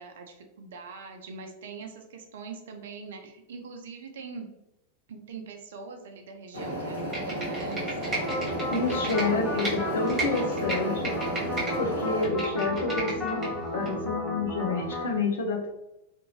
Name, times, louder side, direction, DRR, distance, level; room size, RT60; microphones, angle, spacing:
voice 1, 0.0-4.5 5.1-8.5 9.1-10.1, right 4 dB, 60° right, 4 dB, 0.5 m, -42 dB
sound 1, 6.5-12.3, right 1 dB, 85° left, 0.9 m, -33 dB
Computer keyboard, 7.0-9.7 10.1-11.7 12.1-13.5 13.9-14.0, right 2 dB, 20° right, 1.2 m, -34 dB
sound 2, 8.2-15.0, equal, 10° left, 0.8 m, -33 dB
voice 2, 8.7-11.2 11.8-15.7, left 4 dB, 65° left, 3 dB, 0.6 m, -29 dB
2.6 x 2.6 x 2.9 m, 0.90 s
figure-of-eight pair, 90°, 0 cm